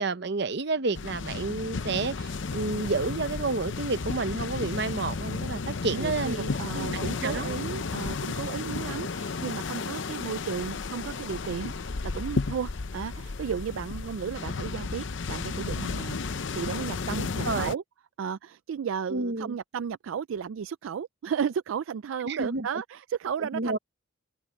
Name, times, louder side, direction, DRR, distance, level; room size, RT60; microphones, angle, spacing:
voice 1, 0.0-6.4 6.7-7.6 17.2-17.8 19.1-19.6 22.2-22.8 23.4-23.8, right 3 dB, 55° right, 0.8 m, -30 dB
sound 1, 0.9-17.7, left 4 dB, 65° left, 0.7 m, -33 dB
voice 2, 5.9-17.8 18.2-23.8, right 7 dB, 75° right, 0.3 m, -34 dB
open air
head